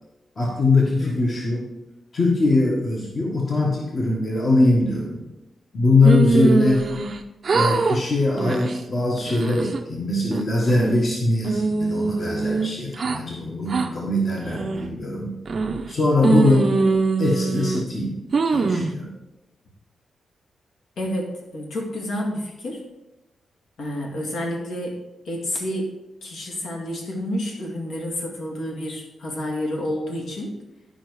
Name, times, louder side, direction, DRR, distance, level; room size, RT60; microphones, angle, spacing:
voice 1, 0.4-1.7 2.1-5.2 5.7-6.8 7.5-15.3 15.9-16.7 17.2-18.2 18.5-19.1, left 2 dB, 35° left, -2 dB, 1.4 m, -21 dB
sound 1, 6.0-7.2 7.4-8.0 8.4-8.7 9.2-9.8 10.3-11.1 11.4-13.2 13.7-13.9 14.4-14.9 15.5-15.9 16.2-17.8 18.3-18.9, right 4 dB, 40° right, 0.7 m, -22 dB
voice 2, 16.3-16.6 21.0-22.8 23.8-25.0 25.2-25.9 26.2-30.5, left 1 dB, 70° left, -1 dB, 2.3 m, -29 dB
11.5 x 5.3 x 4.8 m, 0.97 s
wide cardioid pair, 160°, 0 cm